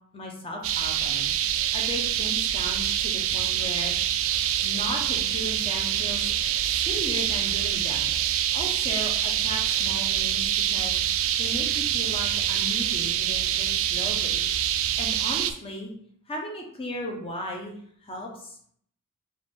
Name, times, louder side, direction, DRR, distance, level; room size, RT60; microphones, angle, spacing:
voice 1, 0.1-4.2 4.6-6.3 6.6-14.4 15.0-15.9 16.3-17.8 18.0-18.6, left 1 dB, 25° left, 0 dB, 0.9 m, -36 dB
sound 1, 0.6-15.5, right 10 dB, 65° right, 0.3 m, -26 dB
4.6 x 2.6 x 3.6 m, 0.63 s
head